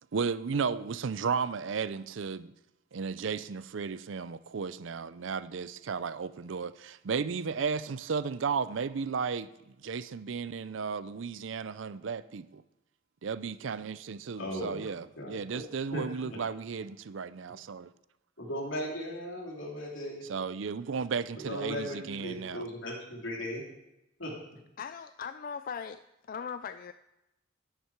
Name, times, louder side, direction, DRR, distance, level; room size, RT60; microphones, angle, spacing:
voice 1, 0.1-2.5 2.9-9.5 9.8-12.6 13.2-17.9 20.3-22.7, right 5 dB, 70° right, 0.5 m, -34 dB
voice 2, 14.4-14.9 15.2-15.6 15.9-16.4 18.4-20.2 21.4-23.6 24.2-24.3, equal, 80° left, 2.9 m, -37 dB
voice 3, 24.8-26.0 26.3-26.9, left 6 dB, 45° left, 0.3 m, -39 dB
10.5 x 10.0 x 4.6 m
head